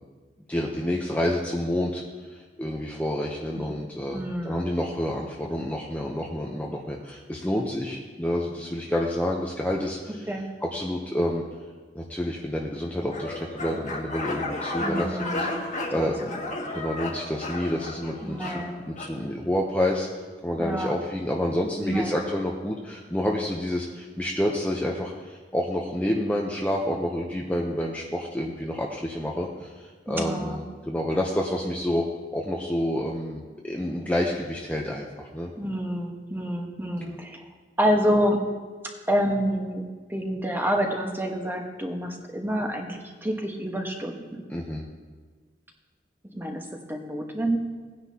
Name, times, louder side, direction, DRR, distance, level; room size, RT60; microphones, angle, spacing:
voice 1, 0.5-2.0 2.3-10.3 10.6-11.4 11.9-15.5 15.9-16.3 16.7-20.1 20.4-32.1 32.3-35.5 37.1-37.2 44.5-44.9, left 1 dB, 10° left, -1 dB, 0.8 m, -29 dB
voice 2, 4.1-4.7 10.3-10.5 14.8-15.5 15.9-16.3 18.2-18.8 20.6-20.9 21.8-22.2 30.1-30.6 35.6-37.4 37.8-38.4 39.1-44.4 46.3-47.6, equal, 10° right, 2 dB, 1.2 m, -28 dB
sound 1, 13.1-19.2, left 2 dB, 45° left, 1.5 m, -33 dB
17.5 x 9.7 x 2.9 m, 1.5 s
head